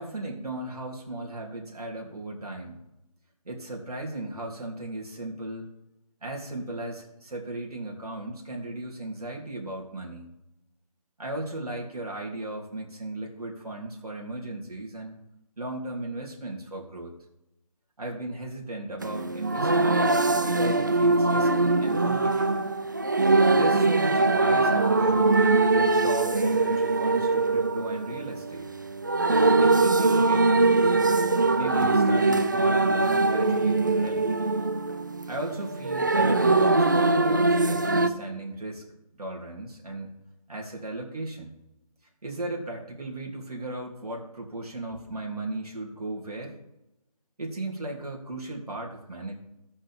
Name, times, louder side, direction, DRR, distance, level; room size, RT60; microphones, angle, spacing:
voice 1, 0.0-2.8 3.4-5.7 6.2-10.3 11.2-15.2 15.6-17.1 18.0-20.1 20.4-22.6 23.5-25.3 25.7-28.7 29.6-31.0 31.5-34.2 35.3-38.8 39.2-40.1 40.5-41.5 42.2-46.5 47.4-49.3, right 2 dB, 75° right, -1 dB, 3.1 m, -36 dB
sound 1, 19.0-38.1, right 3 dB, 30° right, 0.4 m, -22 dB
17.0 x 5.7 x 3.7 m, 0.90 s
figure-of-eight pair, 170°, 20 cm